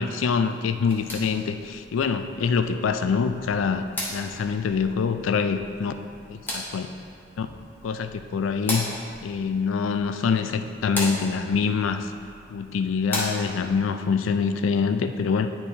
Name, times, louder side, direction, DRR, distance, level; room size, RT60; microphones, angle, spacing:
voice 1, 0.0-5.9 6.3-6.9 7.4-7.5 7.8-12.1 12.5-15.5, left 5 dB, 90° left, 9 dB, 0.4 m, -25 dB
sound 1, 0.7-13.8, left 1 dB, 10° left, 0.8 m, -37 dB
9.5 x 4.4 x 2.8 m, 2.3 s
head